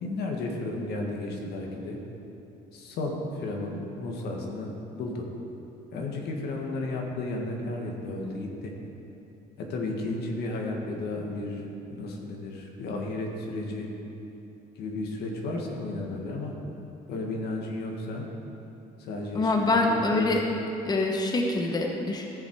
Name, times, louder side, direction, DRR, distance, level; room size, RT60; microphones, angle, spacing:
voice 1, 0.0-2.0 2.7-5.2 5.9-8.7 9.6-13.9 14.7-16.5 17.1-18.2 19.0-20.3, left 2 dB, 75° left, 0 dB, 1.7 m, -33 dB
voice 2, 19.3-20.4 20.8-22.3, left 2 dB, 25° left, 1 dB, 1.0 m, -25 dB
14.0 x 7.4 x 4.7 m, 2.9 s
cardioid pair, 110°, 17 cm